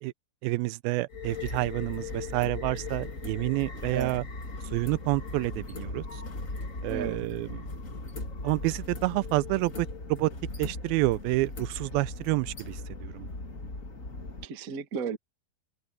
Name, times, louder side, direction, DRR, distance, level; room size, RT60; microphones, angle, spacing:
voice 1, 0.4-4.2 4.7-6.2 6.8-7.6 8.4-10.3 10.6-13.3, right 20 dB, 85° right, 2.4 m, -29 dB
sound 1, 1.1-14.4, left 3 dB, 25° left, 2.4 m, -38 dB
voice 2, 14.4-15.2, right 6 dB, 60° right, 0.9 m, -34 dB
omnidirectional pair, 4.2 m